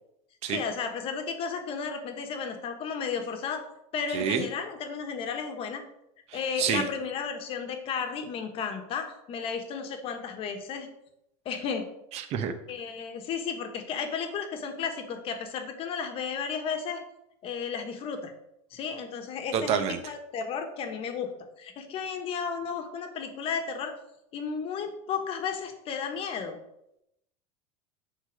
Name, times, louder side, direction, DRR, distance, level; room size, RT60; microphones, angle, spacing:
voice 1, 0.5-3.6 3.9-5.8 6.3-10.9 11.4-11.9 12.7-17.0 17.4-18.3 18.7-21.3 21.6-23.9 24.3-26.6, left 6 dB, 35° left, 6 dB, 1.3 m, -33 dB
voice 2, 4.1-4.5 6.3-6.8 12.1-12.5 19.5-20.0, right 8 dB, 40° right, 8 dB, 1.0 m, -28 dB
9.5 x 4.0 x 6.5 m, 0.82 s
supercardioid pair, 155°, 16 cm